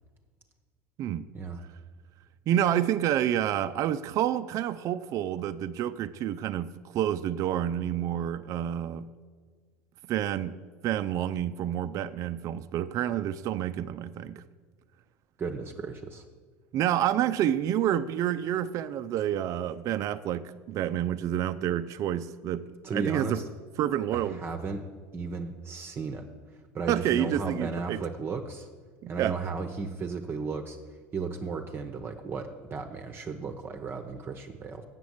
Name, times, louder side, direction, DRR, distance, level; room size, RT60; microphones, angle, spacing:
voice 1, 2.5-9.1 10.1-10.6 10.8-14.4 16.7-22.7 22.9-23.4 23.8-24.4 26.9-28.0 29.0-29.4, right 11 dB, 50° right, 12 dB, 0.4 m, -28 dB
voice 2, 15.4-16.2 22.8-23.4 24.1-24.9 25.1-26.3 26.7-28.7 29.1-30.8 31.1-34.8, right 4 dB, 30° right, 4 dB, 0.8 m, -35 dB
7.5 x 7.0 x 7.9 m, 1.5 s
hypercardioid pair, 85°, 7 cm